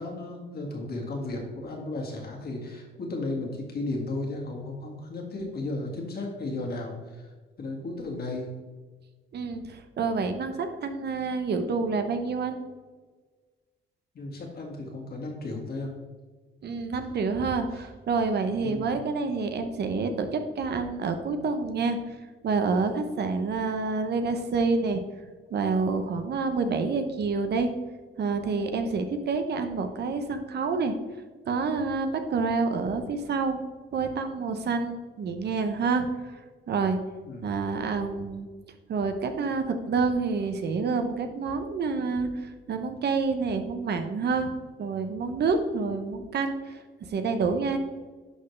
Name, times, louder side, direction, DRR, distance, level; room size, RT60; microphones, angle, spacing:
voice 1, 0.0-7.3 7.6-8.5 14.1-16.0 17.7-17.8 18.6-18.9 37.2-37.5, left 2 dB, 50° left, 0 dB, 2.0 m, -34 dB
voice 2, 9.3-12.6 16.6-22.0 22.4-25.0 25.5-27.7 28.2-31.0 31.5-33.6 33.9-36.4 36.7-37.0 37.4-38.5 38.9-44.5 44.8-47.8, right 4 dB, 55° right, 7 dB, 0.9 m, -28 dB
11.0 x 4.3 x 3.3 m, 1.4 s
cardioid pair, 90°, 20 cm